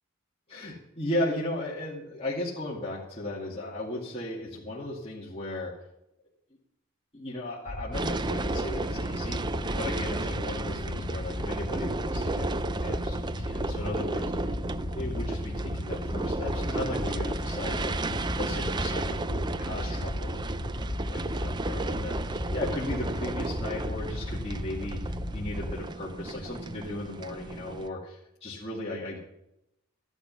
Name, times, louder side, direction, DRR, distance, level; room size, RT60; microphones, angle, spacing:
voice 1, 0.5-5.8 7.1-14.5 14.9-29.2, left 1 dB, 25° left, -6 dB, 2.3 m, -36 dB
sound 1, 7.7-25.7, left 1 dB, 75° left, 2.6 m, -35 dB
sound 2, 7.9-27.9, right 2 dB, 20° right, 0.4 m, -34 dB
13.5 x 11.0 x 5.5 m, 0.85 s
head